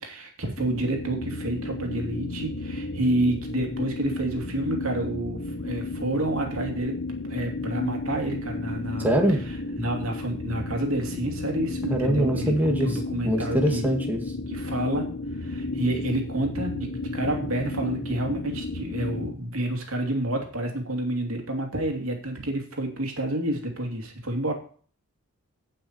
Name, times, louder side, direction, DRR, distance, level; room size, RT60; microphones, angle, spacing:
voice 1, 0.0-7.0 7.3-9.1 9.8-13.9 14.5-24.5, right 1 dB, 75° right, 2 dB, 2.8 m, -29 dB
sound 1, 0.6-19.3, left 2 dB, 50° left, 0.9 m, -33 dB
voice 2, 9.0-9.4 11.9-13.0 13.3-14.2, right 1 dB, 10° right, 2 dB, 1.9 m, -23 dB
17.0 x 5.9 x 4.5 m, 0.43 s
head